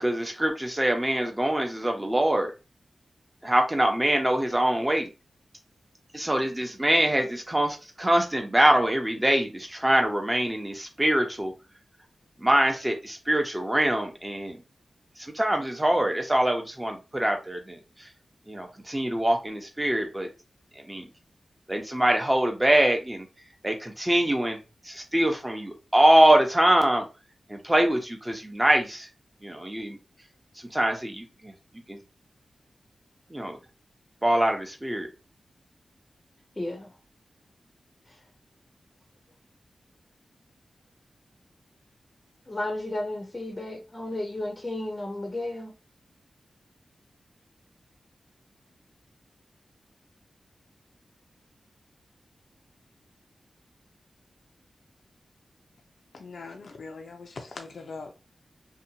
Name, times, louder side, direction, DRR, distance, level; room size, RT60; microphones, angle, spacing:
voice 1, 0.0-2.5 3.4-5.1 6.1-11.5 12.4-14.6 15.3-17.8 18.5-20.3 20.9-21.1 21.7-23.3 23.6-24.6 24.9-27.0 27.5-29.1 29.4-30.0 30.7-31.5 31.9-32.0 33.3-33.6 34.2-35.1, right 1 dB, 15° right, 0.7 m, -24 dB
voice 2, 36.6-36.9 38.1-38.2 42.5-45.7, left 1 dB, 25° left, 0.6 m, -33 dB
voice 3, 56.1-58.1, left 4 dB, 70° left, 0.4 m, -41 dB
2.7 x 2.2 x 2.7 m
wide cardioid pair, 80°, 0 cm